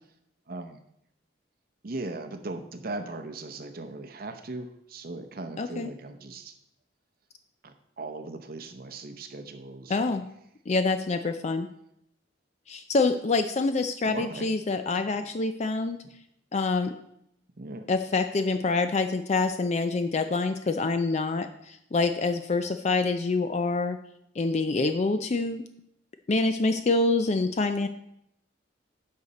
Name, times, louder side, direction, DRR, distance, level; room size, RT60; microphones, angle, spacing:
voice 1, 0.5-0.8 1.8-6.5 7.6-10.0 14.1-14.5 14.9-15.2 17.6-17.9, right 2 dB, 50° right, 7 dB, 0.7 m, -38 dB
voice 2, 5.6-5.9 9.9-10.2 10.7-11.7 12.7-16.0 16.5-16.9 17.9-24.0 24.4-25.6 26.3-27.9, left 3 dB, 35° left, 8 dB, 0.4 m, -26 dB
10.5 x 6.6 x 4.1 m, 0.77 s
head